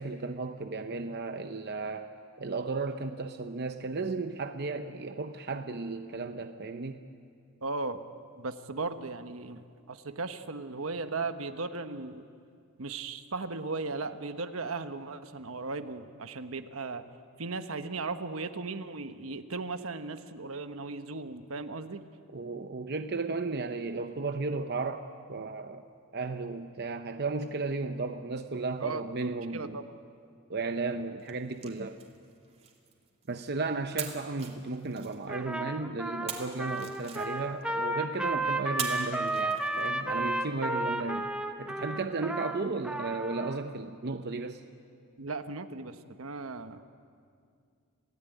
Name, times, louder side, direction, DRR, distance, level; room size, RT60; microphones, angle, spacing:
voice 1, 0.0-2.1 2.4-7.0 22.3-25.8 26.1-29.8 30.5-32.0 33.3-41.3 41.6-44.6, right 3 dB, 50° right, 7 dB, 0.8 m, -34 dB
voice 2, 7.6-8.0 8.4-12.2 12.8-17.0 17.4-22.0 28.8-29.0 29.5-29.9 45.2-46.8, right 3 dB, 75° right, 9 dB, 1.2 m, -37 dB
sound 1, 31.2-33.5 34.0-35.5 36.3-37.7 38.8-40.1, right 6 dB, 30° right, 2.7 m, -42 dB
Trumpet, 35.3-43.6, right 2 dB, 5° right, 1.1 m, -33 dB
28.0 x 17.0 x 9.2 m, 2.3 s
head